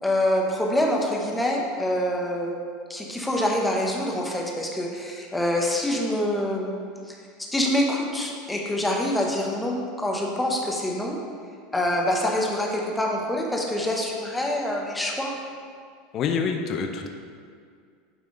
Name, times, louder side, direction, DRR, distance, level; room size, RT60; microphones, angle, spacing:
voice 1, 0.0-2.6 2.9-6.7 7.1-7.2 7.5-11.2 11.7-15.3, left 1 dB, 10° left, -1 dB, 1.0 m, -25 dB
voice 2, 16.1-17.1, left 5 dB, 45° left, 4 dB, 0.6 m, -26 dB
9.3 x 3.5 x 3.8 m, 2.2 s
supercardioid pair, 105°, 0 cm